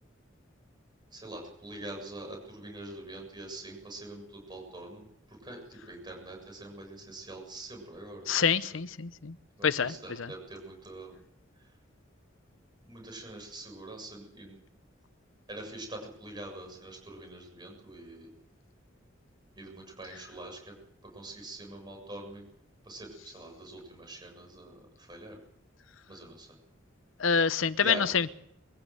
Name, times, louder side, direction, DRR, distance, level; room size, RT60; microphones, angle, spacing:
voice 1, 1.1-8.3 9.6-11.1 12.9-14.6 15.5-18.3 19.5-20.7 21.0-22.4 22.8-25.4 26.1-26.5 27.8-28.2, right 1 dB, 20° right, 3 dB, 7.3 m, -44 dB
voice 2, 8.3-9.3 9.6-9.9 27.2-28.3, left 6 dB, 85° left, 14 dB, 0.8 m, -26 dB
23.0 x 15.5 x 7.8 m, 0.74 s
head